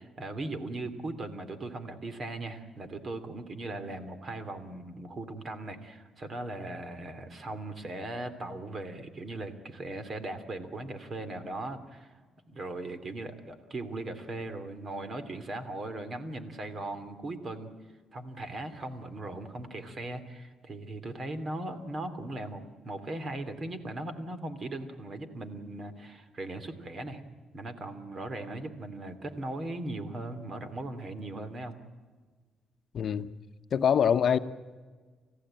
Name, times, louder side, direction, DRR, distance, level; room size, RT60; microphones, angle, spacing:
voice 1, 0.0-12.1 12.5-17.7 18.1-27.2 27.5-31.8, right 2 dB, 40° right, 11 dB, 2.8 m, -38 dB
voice 2, 32.9-33.3 33.7-34.4, left 8 dB, 55° left, 10 dB, 0.9 m, -24 dB
29.0 x 15.0 x 8.9 m, 1.4 s
cardioid pair, 90°, 0 cm